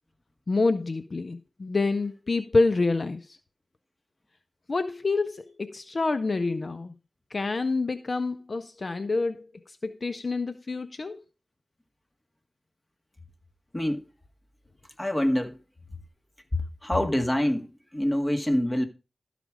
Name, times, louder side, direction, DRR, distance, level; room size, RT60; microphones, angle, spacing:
voice 1, 0.5-3.4 4.7-6.9 7.3-11.2, left 3 dB, 60° left, 0.5 m, -27 dB
voice 2, 15.0-15.6 16.5-18.9, left 1 dB, 25° left, 1.8 m, -26 dB
12.5 x 5.0 x 5.0 m
cardioid pair, 45°, 0 cm